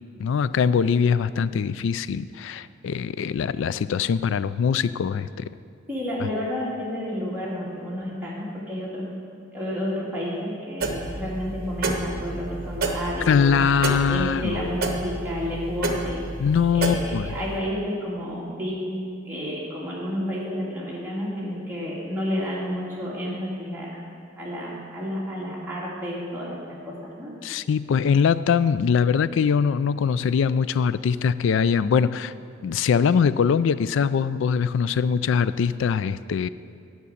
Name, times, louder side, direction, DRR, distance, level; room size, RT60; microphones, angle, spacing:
voice 1, 0.2-5.5 13.3-14.6 16.4-17.3 27.4-32.3 32.6-36.5, left 6 dB, 70° left, 16 dB, 0.3 m, -22 dB
voice 2, 5.9-9.1 9.5-13.6 14.1-16.3 16.7-18.9 19.2-24.0 24.4-26.6 26.8-27.3, equal, 10° right, -7 dB, 2.6 m, -30 dB
sound 1, 10.8-17.6, right 2 dB, 50° right, 1.1 m, -30 dB
9.4 x 6.2 x 8.4 m, 2.5 s
head